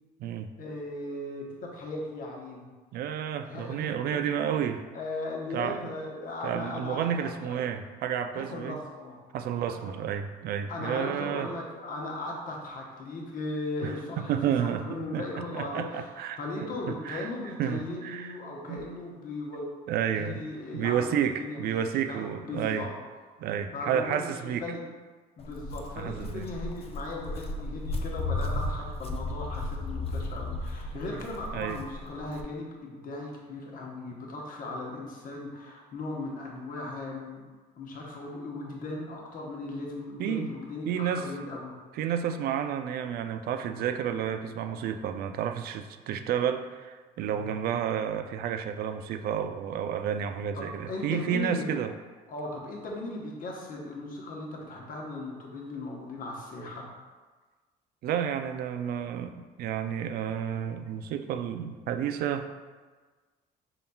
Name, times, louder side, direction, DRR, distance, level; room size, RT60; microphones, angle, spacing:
voice 1, 0.6-2.7 3.4-3.9 4.9-7.6 8.3-9.2 9.7-9.9 10.7-14.3 14.6-16.1 16.4-19.7 20.2-21.7 22.1-22.9 23.7-24.8 25.4-37.4 37.8-41.7 50.5-51.8 52.3-56.9, left 2 dB, 55° left, -1 dB, 1.0 m, -37 dB
voice 2, 2.9-4.8 5.5-5.8 6.4-8.8 9.3-11.5 13.8-13.9 14.3-14.8 15.1-15.2 15.5-16.4 16.9-17.3 17.6-18.3 18.7-18.8 19.9-20.4 20.7-22.8 23.4-24.6 26.0-26.5 31.5-31.8 40.2-40.5 40.9-41.3 42.0-51.9 58.0-62.5, right 9 dB, 65° right, 8 dB, 0.4 m, -31 dB
Walk footsteps, 25.4-32.4, left 2 dB, 35° left, 0.4 m, -35 dB
5.5 x 3.8 x 2.3 m, 1.4 s
cardioid pair, 110°, 17 cm